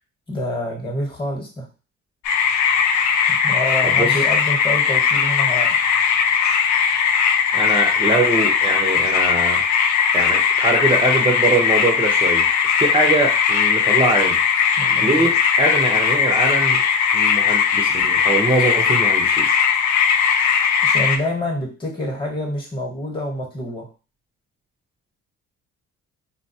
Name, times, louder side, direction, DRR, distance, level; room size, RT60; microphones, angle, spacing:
voice 1, 0.3-1.6 3.3-5.7 14.8-15.3 20.8-23.9, equal, 15° left, 0 dB, 1.1 m, -27 dB
sound 1, 2.2-21.2, left 7 dB, 70° left, 0.5 m, -18 dB
voice 2, 3.8-4.2 7.5-9.7 10.1-14.4 15.0-16.9 17.1-19.5, right 2 dB, 20° right, 0 dB, 0.6 m, -22 dB
3.9 x 2.2 x 2.7 m, 0.34 s
cardioid pair, 90°, 30 cm